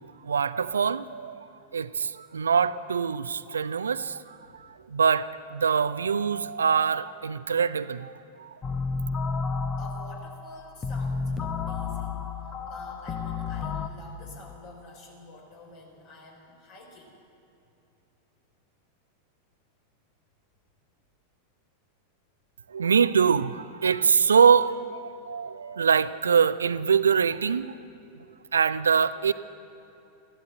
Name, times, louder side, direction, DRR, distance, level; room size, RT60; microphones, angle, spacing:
voice 1, 0.2-1.5 1.7-8.1 8.4-8.6 22.7-27.8 28.5-29.3, right 6 dB, 70° right, 0.4 m, -24 dB
sound 1, 8.6-13.9, left 5 dB, 25° left, 0.8 m, -31 dB
voice 2, 9.8-12.2 12.4-17.2, left 2 dB, 45° left, 4.1 m, -48 dB
15.0 x 12.0 x 7.9 m
figure-of-eight pair, 90°, 0 cm